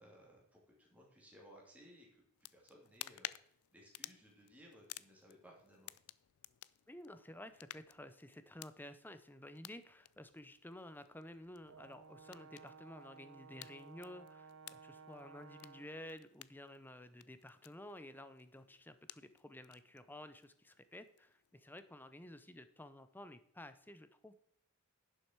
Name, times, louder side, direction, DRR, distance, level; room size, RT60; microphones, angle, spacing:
voice 1, 0.0-2.2 2.5-5.9, equal, 5° right, -3 dB, 2.9 m, -61 dB
sound 1, 2.3-21.9, left 15 dB, 80° left, 0.4 m, -56 dB
voice 2, 6.9-24.3, left 1 dB, 10° left, 12 dB, 0.6 m, -53 dB
Brass instrument, 11.7-16.1, right 5 dB, 65° right, 0.5 m, -57 dB
11.0 x 6.5 x 4.6 m, 0.70 s
head